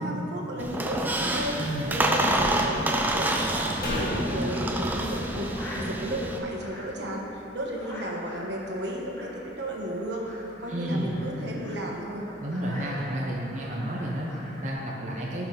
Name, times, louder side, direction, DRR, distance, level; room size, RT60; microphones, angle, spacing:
voice 1, 0.0-5.5 5.7-10.2 10.6-12.3, right 1 dB, 65° right, -1 dB, 1.3 m, -33 dB
Squeak, 0.6-6.4, right 1 dB, 10° right, 0.4 m, -28 dB
sound 1, 1.2-14.7, equal, 15° left, 1.8 m, -45 dB
voice 2, 1.6-1.9 10.7-11.2 12.4-15.5, right 1 dB, 40° right, -4 dB, 1.0 m, -31 dB
sound 2, 3.8-7.2 7.5-7.6, equal, 50° left, 1.8 m, -34 dB
11.5 x 5.9 x 3.9 m, 2.8 s
head